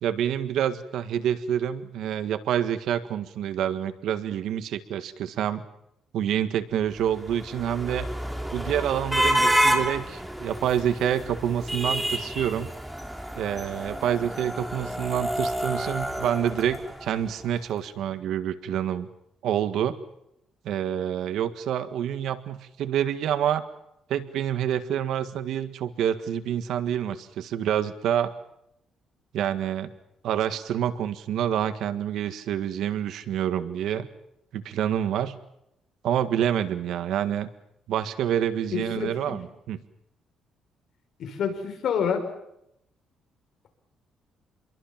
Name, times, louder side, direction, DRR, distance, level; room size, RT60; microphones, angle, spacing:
voice 1, 0.0-5.6 6.1-8.1 8.5-12.7 13.4-19.1 19.4-20.0 20.7-23.6 24.1-28.3 29.3-29.9 30.2-34.1 34.5-35.3 36.0-37.5 37.9-39.8, right 10 dB, 70° right, 10 dB, 1.7 m, -27 dB
sound 1, 7.0-17.3, equal, 5° right, 3.3 m, -29 dB
voice 2, 38.7-39.4 41.2-42.2, left 7 dB, 55° left, 6 dB, 5.7 m, -28 dB
28.0 x 22.5 x 7.5 m, 0.80 s
cardioid pair, 150°, 0 cm